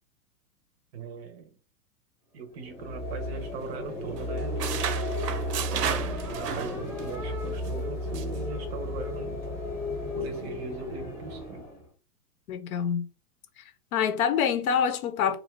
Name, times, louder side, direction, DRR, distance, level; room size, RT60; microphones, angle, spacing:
voice 1, 0.9-1.5 2.3-4.9 5.7-9.5 10.1-11.7, right 4 dB, 45° right, 0.6 m, -40 dB
sound 1, 2.5-11.9, left 1 dB, 5° left, 0.8 m, -33 dB
sound 2, 3.0-3.9 4.2-7.1 7.5-7.7 8.1-8.4, right 8 dB, 85° right, 0.7 m, -34 dB
voice 2, 12.5-13.1 13.6-13.7 13.9-15.4, left 7 dB, 65° left, 0.7 m, -26 dB
2.6 x 2.3 x 3.1 m
hypercardioid pair, 150°, 47 cm